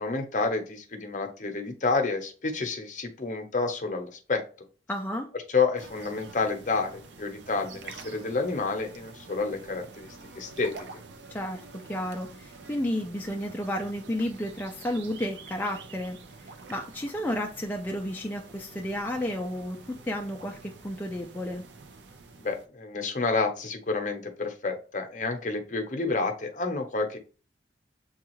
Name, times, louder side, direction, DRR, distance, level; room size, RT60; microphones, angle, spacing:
voice 1, 0.0-4.4 5.5-10.9 22.4-27.2, left 4 dB, 45° left, 4 dB, 0.7 m, -29 dB
voice 2, 4.9-5.3 11.3-11.6 11.9-16.2 16.7-21.6, left 1 dB, 10° left, 0 dB, 0.3 m, -32 dB
sound 1, 5.8-22.7, right 4 dB, 80° right, 0.6 m, -47 dB
7.0 x 2.4 x 3.0 m, 0.37 s
head